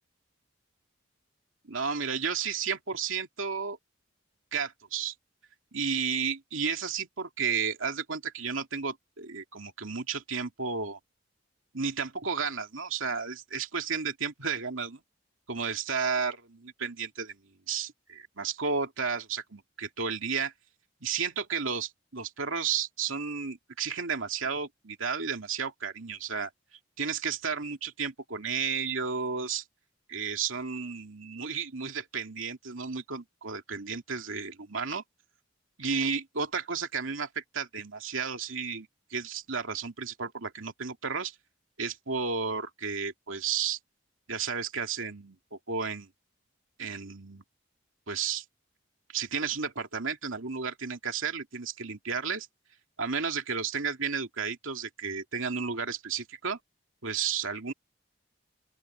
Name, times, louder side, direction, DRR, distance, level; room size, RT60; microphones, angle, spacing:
voice 1, 1.7-3.8 4.5-5.1 5.7-11.0 11.7-15.0 15.5-17.4 17.7-20.5 21.0-26.5 27.0-29.6 30.1-35.0 35.8-41.4 41.8-43.8 44.3-46.1 46.8-47.4 48.1-48.4 49.1-52.5 53.0-56.6 57.0-57.7, right 6 dB, 90° right, 2.5 m, -32 dB
open air
head